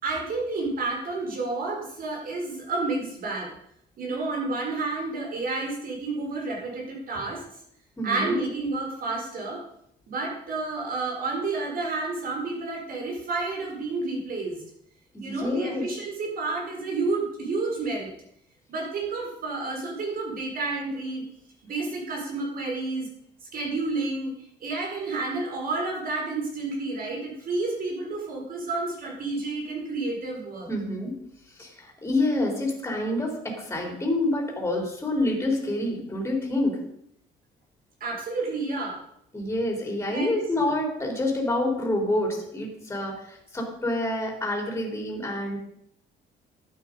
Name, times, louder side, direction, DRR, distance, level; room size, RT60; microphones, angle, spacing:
voice 1, 0.0-3.5 4.0-7.4 8.0-9.6 10.1-14.6 15.2-18.1 18.7-21.2 21.7-23.1 23.5-24.3 24.6-30.7 38.0-39.0 40.1-40.4, right 3 dB, 55° right, -1 dB, 4.8 m, -30 dB
voice 2, 8.0-8.4 15.1-15.9 30.7-31.1 31.6-36.8 39.3-45.6, left 1 dB, 15° left, 0 dB, 4.0 m, -27 dB
12.0 x 8.6 x 5.3 m, 0.72 s
cardioid pair, 115°, 17 cm